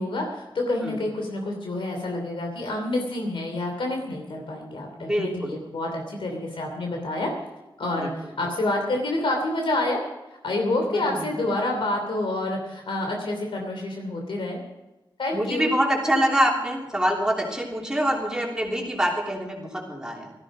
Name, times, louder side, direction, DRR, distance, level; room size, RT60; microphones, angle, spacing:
voice 1, 0.0-7.3 7.8-10.0 10.4-14.6 15.2-15.7, left 2 dB, 90° left, 2 dB, 2.9 m, -28 dB
voice 2, 5.0-5.6 8.0-8.1 8.4-8.5 10.9-11.3 15.3-20.3, equal, 10° right, -1 dB, 3.2 m, -25 dB
17.0 x 14.0 x 5.0 m, 1.0 s
wide cardioid pair, 135°, 9 cm